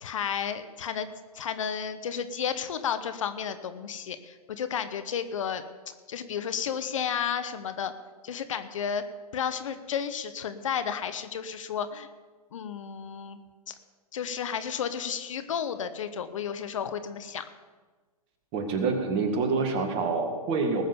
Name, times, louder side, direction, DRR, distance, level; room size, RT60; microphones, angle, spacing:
voice 1, 0.0-1.1 1.3-7.9 8.2-9.0 9.3-12.1 12.5-13.4 13.7-13.8 14.1-17.4, left 7 dB, 55° left, 11 dB, 1.0 m, -32 dB
voice 2, 18.5-20.8, right 4 dB, 30° right, 4 dB, 2.1 m, -27 dB
19.5 x 6.5 x 6.9 m, 1.3 s
figure-of-eight pair, 125°, 20 cm